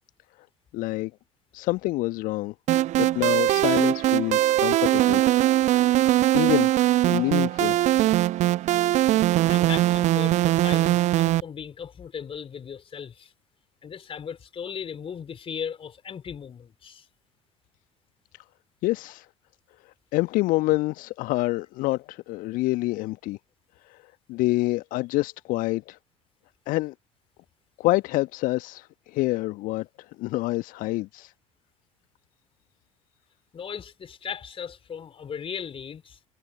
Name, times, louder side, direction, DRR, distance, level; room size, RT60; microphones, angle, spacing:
voice 1, 0.7-1.1 1.5-2.5 3.0-5.2 5.8-6.0 6.3-6.7 7.1-7.8 18.8-19.3 20.1-23.4 23.9-24.0 24.3-26.0 26.7-26.9 27.8-29.8 30.2-31.3, left 19 dB, 50° left, 1.3 m, -27 dB
sound 1, 2.7-11.4, right 14 dB, 45° right, 0.8 m, -21 dB
voice 2, 9.5-13.3 13.8-17.1 33.5-36.2, left 7 dB, 30° left, 3.2 m, -37 dB
figure-of-eight pair, 65°, 17 cm